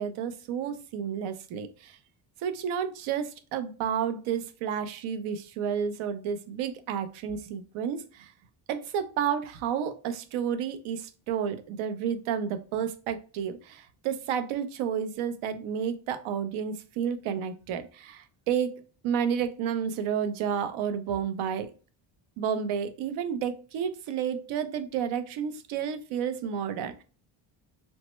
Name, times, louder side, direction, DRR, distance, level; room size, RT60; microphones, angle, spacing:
voice 1, 0.0-2.0 2.4-8.3 8.7-21.7 22.4-27.0, right 8 dB, 80° right, 10 dB, 0.6 m, -31 dB
3.2 x 2.0 x 3.0 m, 0.36 s
cardioid pair, 100°, 48 cm